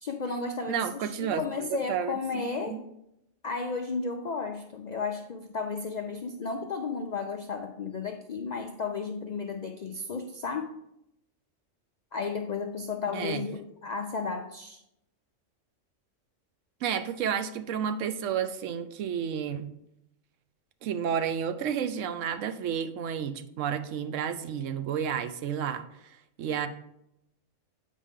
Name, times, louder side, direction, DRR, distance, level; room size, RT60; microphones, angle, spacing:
voice 1, 0.0-2.8 3.4-10.7 12.1-14.8, left 4 dB, 65° left, 4 dB, 0.4 m, -33 dB
voice 2, 0.7-1.4 1.7-2.8 13.0-13.4 16.8-19.7 20.8-26.7, right 8 dB, 75° right, 10 dB, 0.9 m, -31 dB
8.3 x 5.1 x 3.6 m, 0.81 s
omnidirectional pair, 1.3 m